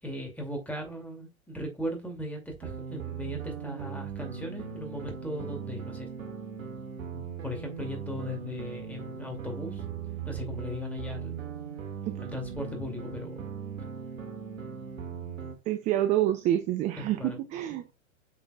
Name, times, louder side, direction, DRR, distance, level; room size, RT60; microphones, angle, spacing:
voice 1, 0.0-6.1 7.1-9.8 10.3-11.4 12.2-13.5 17.0-17.4, left 1 dB, 5° left, 2.4 m, -38 dB
sound 1, 2.6-15.6, right 7 dB, 70° right, 2.1 m, -39 dB
voice 2, 15.7-17.8, right 12 dB, 20° right, 0.5 m, -27 dB
6.9 x 6.6 x 2.3 m
figure-of-eight pair, 110°, 42 cm